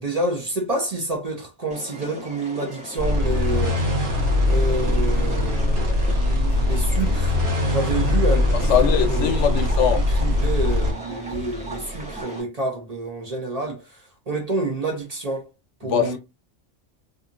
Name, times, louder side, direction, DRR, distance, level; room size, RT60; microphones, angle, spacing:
voice 1, 0.0-3.8 4.5-7.4 7.7-15.5 15.8-16.2, right 2 dB, 40° right, 0.7 m, -28 dB
Lionne-Buvant+amb oiseaux, 1.7-12.4, left 1 dB, 5° right, 0.8 m, -39 dB
sound 1, 3.0-10.9, left 1 dB, 70° right, 1.2 m, -21 dB
sound 2, 6.5-12.2, right 1 dB, 20° left, 1.3 m, -34 dB
voice 2, 8.7-10.0 15.8-16.2, left 8 dB, 80° left, 1.0 m, -21 dB
2.7 x 2.5 x 2.4 m
omnidirectional pair, 1.2 m